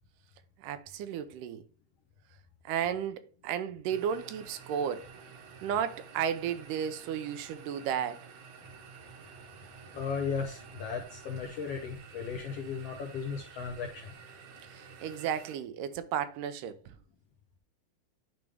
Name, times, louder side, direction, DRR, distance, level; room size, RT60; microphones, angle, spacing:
voice 1, 0.6-1.6 2.7-5.1 5.6-8.2 14.7-17.0, right 8 dB, 85° right, 2.3 m, -33 dB
sound 1, 3.9-15.6, right 6 dB, 65° right, 2.1 m, -51 dB
voice 2, 9.9-14.1, left 5 dB, 70° left, 1.6 m, -36 dB
10.5 x 3.5 x 3.4 m
omnidirectional pair, 3.7 m